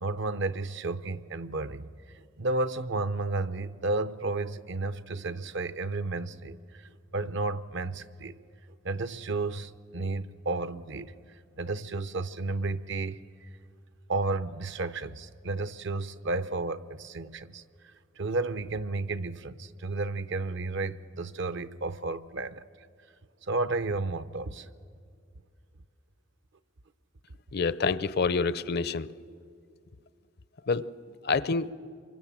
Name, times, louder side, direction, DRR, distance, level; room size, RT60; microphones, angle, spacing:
voice 1, 0.0-1.9 2.1-8.4 8.8-11.1 11.6-13.5 14.1-17.6 18.2-22.6 23.4-24.7, right 3 dB, 65° right, 0.7 m, -32 dB
voice 2, 27.5-29.1 30.6-30.9 31.2-31.7, left 4 dB, 50° left, 0.5 m, -27 dB
26.5 x 24.5 x 7.4 m
head